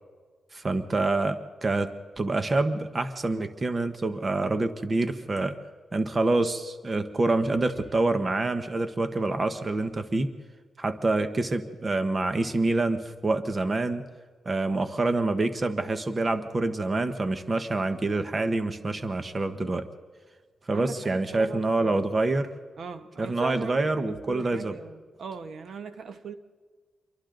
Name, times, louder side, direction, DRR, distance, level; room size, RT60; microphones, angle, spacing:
voice 1, 0.5-5.6 5.9-10.3 10.8-14.0 14.4-19.9 20.7-22.5 23.2-24.7, right 2 dB, 30° right, 9 dB, 1.1 m, -26 dB
voice 2, 20.7-22.0 22.8-26.3, right 5 dB, 70° right, 9 dB, 1.2 m, -39 dB
28.0 x 24.0 x 3.9 m, 1.5 s
wide cardioid pair, 120°, 0 cm